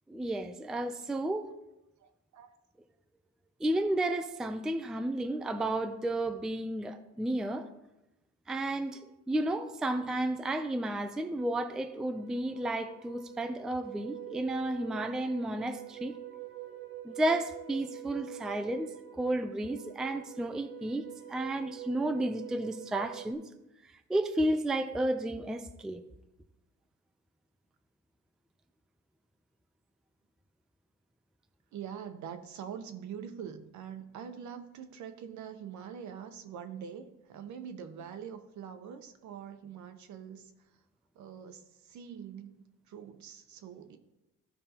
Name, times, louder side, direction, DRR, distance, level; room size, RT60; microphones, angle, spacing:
voice 1, 0.1-1.5 3.6-7.7 8.5-9.0 9.3-16.2 17.0-18.9 19.2-23.4 24.1-26.0, right 1 dB, ahead, 0.3 m, -32 dB
voice 2, 2.0-2.6 31.7-40.7 41.1-42.6 42.9-44.0, right 8 dB, 70° right, 0.9 m, -44 dB
sound 1, 11.1-23.3, right 14 dB, 45° right, 0.8 m, -46 dB
14.5 x 5.3 x 2.9 m
cardioid pair, 140°, 30 cm